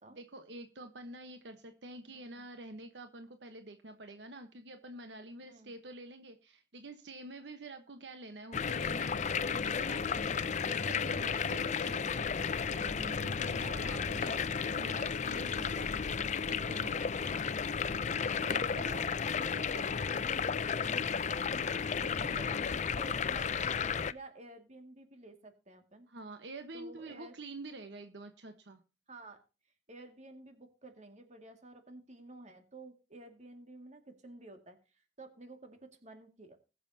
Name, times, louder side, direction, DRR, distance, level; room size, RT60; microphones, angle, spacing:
voice 1, 0.1-15.9 16.5-17.0 18.5-18.9 23.2-23.6 26.1-28.8, right 2 dB, 75° right, 7 dB, 1.2 m, -48 dB
voice 2, 2.1-2.5 5.4-5.7 13.6-14.3 18.4-21.6 22.0-26.1 26.7-27.4 29.1-29.4 29.9-36.6, right 2 dB, 40° right, 5 dB, 2.2 m, -52 dB
sound 1, 8.5-24.1, left 6 dB, 40° left, 0.5 m, -33 dB
21.0 x 7.0 x 2.8 m, 0.31 s
head